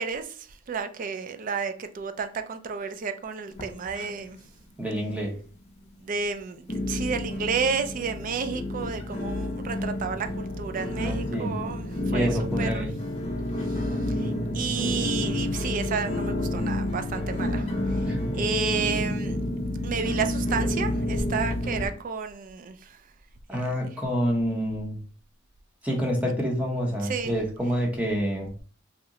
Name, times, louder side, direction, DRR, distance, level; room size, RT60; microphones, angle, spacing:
voice 1, 0.0-4.4 6.0-12.3 12.6-12.9 13.6-13.9 14.2-18.0 18.3-19.4 19.8-23.0 23.5-23.6 27.0-27.4, right 5 dB, 40° right, 0.3 m, -31 dB
sound 1, 3.5-4.5 4.7-5.4 5.9-6.0 6.7-21.9, left 1 dB, 30° left, 0.6 m, -29 dB
voice 2, 4.8-5.4 10.9-11.5 12.1-13.0 18.0-18.4 23.5-25.0 25.8-28.5, equal, 5° right, 0.8 m, -28 dB
2.8 x 2.1 x 3.6 m
head